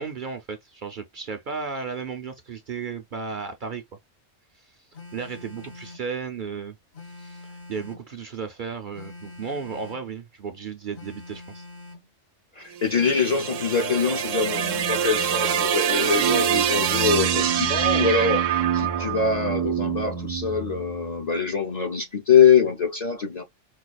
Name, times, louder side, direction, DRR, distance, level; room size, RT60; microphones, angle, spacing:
voice 1, 0.0-3.8 4.6-4.8 5.1-6.8 7.1-11.7, right 5 dB, 50° right, 0.6 m, -34 dB
Telephone, 4.9-6.1 6.9-8.1 8.9-10.1 10.9-12.1 12.9-14.1, left 2 dB, 65° left, 1.6 m, -44 dB
voice 2, 12.6-23.4, left 6 dB, 45° left, 0.6 m, -23 dB
sound 1, 12.7-21.0, right 8 dB, 85° right, 1.0 m, -25 dB
4.7 x 2.3 x 2.3 m
omnidirectional pair, 1.3 m